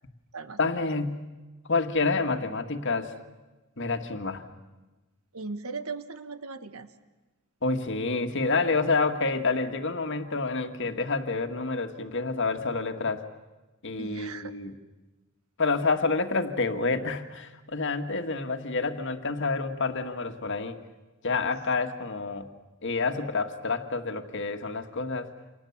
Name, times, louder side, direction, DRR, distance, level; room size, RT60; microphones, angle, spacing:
voice 1, 0.6-1.2 1.7-3.2 3.8-4.4 7.6-13.2 13.8-14.7 15.6-20.8 21.2-22.5 22.8-25.3, left 3 dB, 55° left, 7 dB, 1.9 m, -28 dB
voice 2, 5.3-6.9 14.0-14.5, right 4 dB, 75° right, 11 dB, 1.6 m, -38 dB
29.0 x 27.5 x 7.3 m, 1.1 s
head